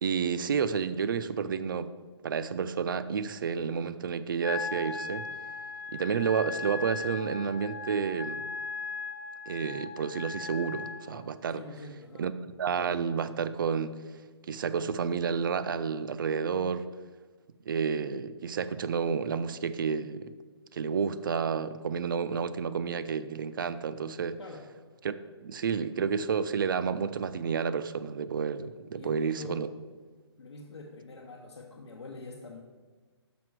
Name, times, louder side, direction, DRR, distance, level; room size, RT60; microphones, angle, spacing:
voice 1, 0.0-1.9 2.2-5.3 5.9-8.4 9.5-11.6 12.2-12.3 12.6-13.9 14.5-16.8 17.7-20.3 20.7-24.4 25.0-25.1 25.4-29.7, right 6 dB, 50° right, 13 dB, 0.4 m, -30 dB
Wind instrument woodwind instrument, 4.4-11.0, left 4 dB, 35° left, 0.7 m, -38 dB
voice 2, 11.5-12.3 24.4-24.7 28.9-29.6 30.4-32.6, left 3 dB, 85° left, -2 dB, 1.0 m, -45 dB
6.1 x 5.4 x 4.6 m, 1.4 s
hypercardioid pair, 155°, 14 cm